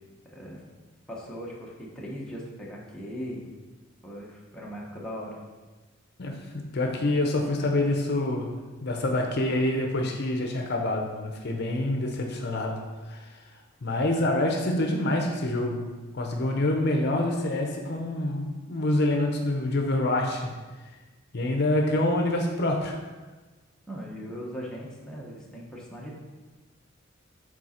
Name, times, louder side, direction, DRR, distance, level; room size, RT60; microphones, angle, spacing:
voice 1, 1.1-3.5 4.0-5.4 23.9-26.2, equal, 5° left, -5 dB, 1.1 m, -39 dB
voice 2, 6.2-12.8 13.1-13.2 13.8-20.6 21.3-23.0, left 1 dB, 55° left, 2 dB, 0.7 m, -26 dB
7.4 x 4.0 x 4.3 m, 1.3 s
head